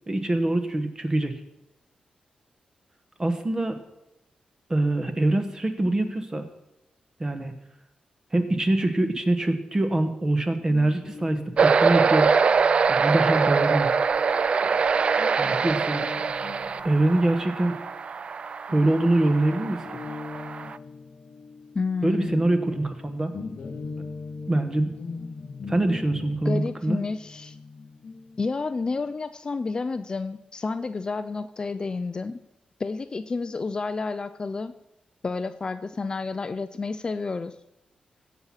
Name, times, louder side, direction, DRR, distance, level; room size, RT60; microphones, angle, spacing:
voice 1, 0.1-1.3 3.2-3.8 4.7-6.5 7.2-7.5 8.3-12.3 12.9-13.9 15.4-16.0 16.8-17.8 18.7-20.0 22.0-23.3 24.5-24.9 25.7-27.0, right 1 dB, 20° right, 7 dB, 1.2 m, -24 dB
Guitar, 10.7-18.4 18.7-29.1, left 4 dB, 50° left, 1.0 m, -41 dB
sound 1, 11.6-20.8, right 5 dB, 45° right, 0.3 m, -24 dB
voice 2, 21.7-22.4 26.4-27.6 28.4-32.4 32.8-34.7 35.2-37.5, left 4 dB, 30° left, 11 dB, 0.4 m, -30 dB
16.0 x 6.2 x 5.7 m, 0.90 s
wide cardioid pair, 125°, 3 cm